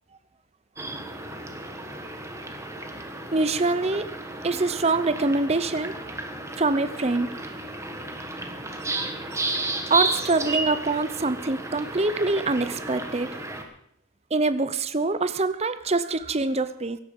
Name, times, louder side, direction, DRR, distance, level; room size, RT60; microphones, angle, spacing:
sound 1, 0.8-13.6, right 2 dB, 15° right, 1.5 m, -33 dB
voice 1, 3.3-4.1 4.4-5.9 6.6-7.3 9.9-13.3 14.3-17.0, right 3 dB, 30° right, 12 dB, 0.7 m, -24 dB
16.5 x 12.5 x 5.3 m, 0.69 s
head